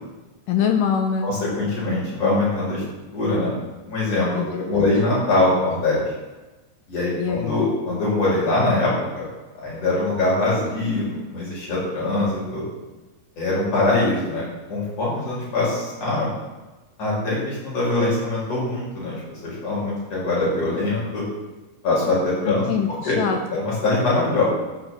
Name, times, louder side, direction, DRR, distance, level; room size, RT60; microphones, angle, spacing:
voice 1, 0.5-1.3 4.3-4.9 7.2-7.6 22.5-23.4, left 7 dB, 75° left, 5 dB, 2.3 m, -24 dB
voice 2, 1.2-2.8 3.1-3.5 3.9-4.3 4.6-6.0 6.9-9.2 9.6-12.6 13.4-16.3 17.0-21.2 21.8-22.7 23.0-23.2 23.5-24.4, left 2 dB, 45° left, -6 dB, 6.5 m, -23 dB
14.0 x 6.0 x 7.8 m, 1.1 s
omnidirectional pair, 4.0 m